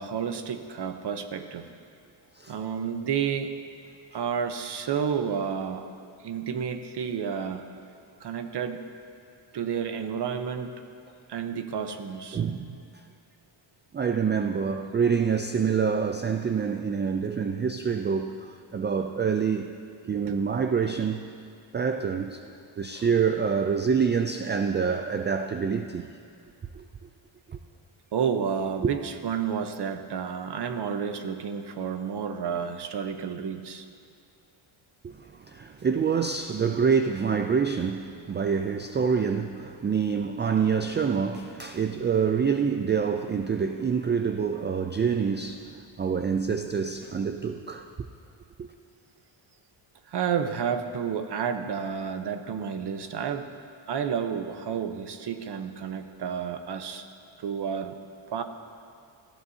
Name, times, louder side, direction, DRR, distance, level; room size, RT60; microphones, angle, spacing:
voice 1, 0.0-1.7 2.5-3.5 4.1-5.9 6.2-7.7 8.2-8.8 9.5-10.7 11.3-12.4 20.0-20.4 22.9-23.1 28.1-33.9 50.1-53.5 53.9-57.0 57.4-58.0 58.3-58.4, right 7 dB, 55° right, 1.0 m, -30 dB
voice 2, 12.3-12.8 13.9-19.7 20.1-21.2 21.7-26.1 26.7-26.8 27.5-27.6 35.0-47.8 48.6-48.7, right 6 dB, 25° right, 0.3 m, -26 dB
19.0 x 13.5 x 2.8 m
cardioid pair, 110°, 48 cm